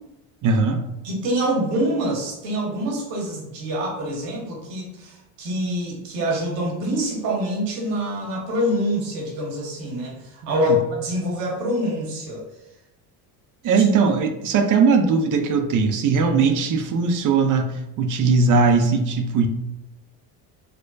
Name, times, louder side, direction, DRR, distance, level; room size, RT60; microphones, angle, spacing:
voice 1, 0.4-0.8 10.5-10.8 13.6-19.5, right 4 dB, 45° right, 6 dB, 0.5 m, -19 dB
voice 2, 1.0-12.5 13.8-13.9 16.2-16.6, equal, 90° right, -2 dB, 1.3 m, -26 dB
4.4 x 2.2 x 2.5 m, 0.92 s
supercardioid pair, 85°, 46 cm